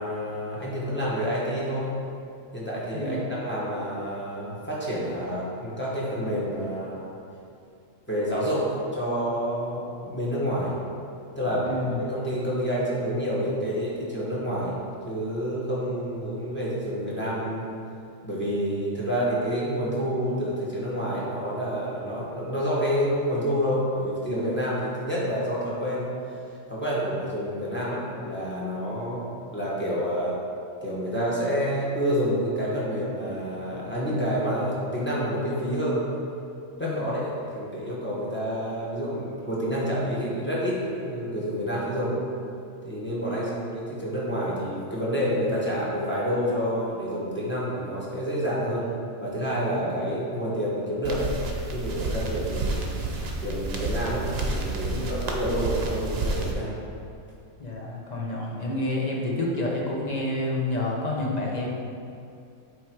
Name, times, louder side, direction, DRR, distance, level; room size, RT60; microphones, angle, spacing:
voice 1, 0.0-1.9 2.5-7.1 8.1-10.7 11.4-14.7 15.0-17.7 18.2-26.1 26.7-29.3 29.5-30.4 30.8-36.0 36.8-42.2 42.8-48.9 49.2-51.3 51.7-52.9 53.4-56.8, equal, 10° left, -7 dB, 1.3 m, -28 dB
voice 2, 2.9-3.3 11.6-12.0 36.8-37.2 43.3-43.5 49.8-50.0 54.9-55.1 57.6-61.7, left 2 dB, 35° left, -3 dB, 1.0 m, -29 dB
sound 1, 51.0-56.5, right 2 dB, 55° right, 1.0 m, -30 dB
8.1 x 3.4 x 4.6 m, 2.5 s
omnidirectional pair, 1.3 m